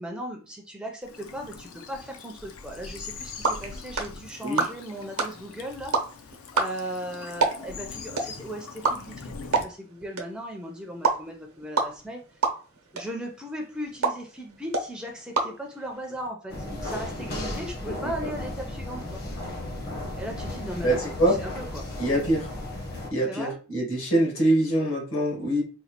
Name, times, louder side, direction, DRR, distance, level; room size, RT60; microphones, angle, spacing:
voice 1, 0.0-5.9 6.5-12.4 12.9-19.2 20.1-21.0 21.3-21.9 23.3-23.5, equal, 5° right, 1 dB, 0.4 m, -37 dB
Bird vocalization bird call bird song / Stream, 1.0-9.6, left 5 dB, 80° left, 0.5 m, -42 dB
sound 1, 3.0-16.3, right 4 dB, 90° right, 0.7 m, -31 dB
sound 2, 16.5-23.1, left 1 dB, 45° left, 0.8 m, -35 dB
voice 2, 18.0-18.3 20.8-21.3 22.0-22.5 22.9-25.6, right 1 dB, 65° left, 0 dB, 1.2 m, -24 dB
4.1 x 2.3 x 2.8 m, 0.36 s
head